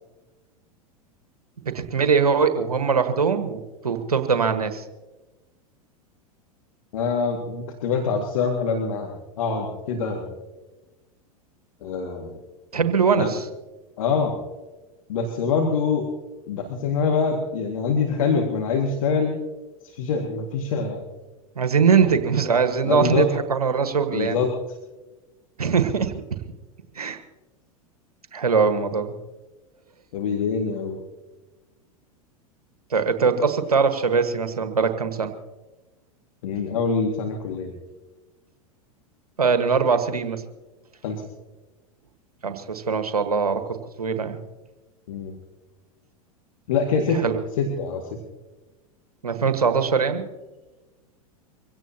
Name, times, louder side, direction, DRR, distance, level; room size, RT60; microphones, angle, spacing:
voice 1, 1.6-4.8 12.7-13.4 21.5-24.4 25.6-26.2 26.9-27.2 28.3-29.1 32.9-35.3 39.4-40.4 42.4-44.4 47.2-47.4 49.2-50.2, right 5 dB, 80° right, 8 dB, 1.5 m, -22 dB
voice 2, 6.9-10.4 11.8-12.4 13.1-13.3 14.0-14.3 15.1-16.1 16.5-19.3 19.9-21.0 22.0-22.1 22.8-23.3 24.1-24.5 30.1-31.0 36.4-37.7 41.0-41.2 45.1-45.3 46.7-47.2 47.6-48.0, left 5 dB, 65° left, 2 dB, 2.1 m, -25 dB
24.0 x 17.0 x 2.9 m, 1.1 s
figure-of-eight pair, 90°, 19 cm